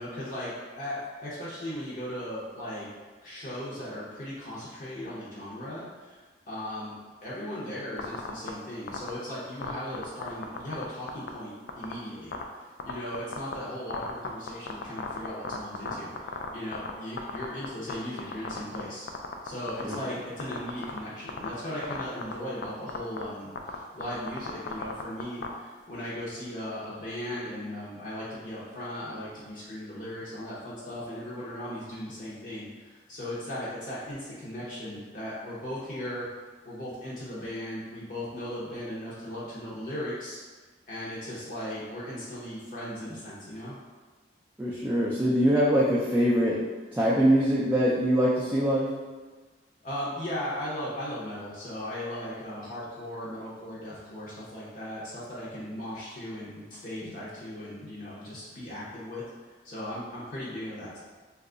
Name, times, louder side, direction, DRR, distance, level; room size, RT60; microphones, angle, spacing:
voice 1, 0.0-2.9 3.2-7.0 7.2-19.1 19.4-36.3 36.6-40.4 40.9-43.7 49.8-61.0, left 1 dB, 45° left, -8 dB, 0.7 m, -37 dB
sound 1, 8.0-8.5 8.9-9.1 9.6-10.8 11.1-11.3 11.7-11.9 12.3-12.4 12.8-13.5 13.9-16.9 17.2-17.9 18.2-18.8 19.1-20.0 20.4-21.0 21.3-21.5 21.8-22.3 22.6-22.7 22.9-23.2 23.6-23.8 24.0-25.5, left 6 dB, 75° left, 0.3 m, -33 dB
voice 2, 44.6-46.6 46.9-48.9, equal, 10° right, -7 dB, 0.3 m, -23 dB
2.8 x 2.3 x 3.7 m, 1.3 s
head